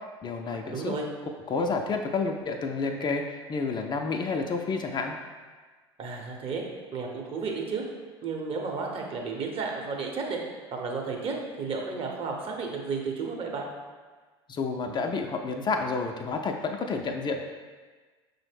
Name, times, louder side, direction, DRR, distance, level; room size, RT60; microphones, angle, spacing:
voice 1, 0.2-0.9 1.5-5.2 14.5-17.4, left 4 dB, 35° left, 3 dB, 0.4 m, -30 dB
voice 2, 0.7-1.1 6.0-6.6 6.9-7.8 8.2-10.4 10.7-13.7, right 4 dB, 45° right, 0 dB, 0.8 m, -32 dB
5.4 x 2.1 x 3.4 m, 1.4 s
hypercardioid pair, 75°, 14 cm